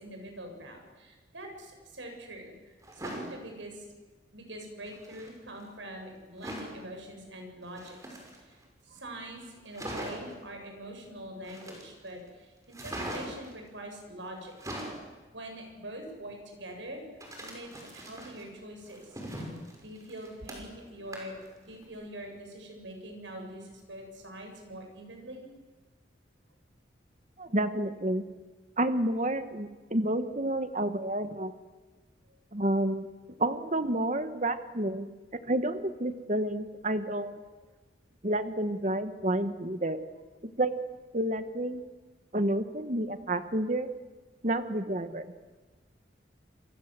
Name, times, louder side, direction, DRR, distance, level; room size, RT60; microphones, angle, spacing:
voice 1, 0.0-3.8 4.3-8.6 8.8-14.5 15.3-17.0 17.4-19.1 19.8-25.5, right 1 dB, 85° right, 3 dB, 7.7 m, -44 dB
sound 1, 2.8-3.3 4.9-5.3 6.4-6.8 7.7-8.6 9.0-9.1 9.4-9.5 9.7-10.3 11.4-12.1 12.7-13.5 14.4-15.0 17.2-18.4 18.9-20.8 21.1-21.5 21.8-21.9, right 1 dB, 20° right, 5.7 m, -40 dB
voice 2, 27.4-28.2 28.8-31.5 32.5-33.1 33.4-35.1 35.5-37.4 38.2-40.0 40.6-40.7 41.1-41.8 42.3-43.9 44.4-45.3, right 1 dB, 40° right, 10 dB, 1.4 m, -29 dB
28.5 x 24.5 x 7.7 m, 1.3 s
head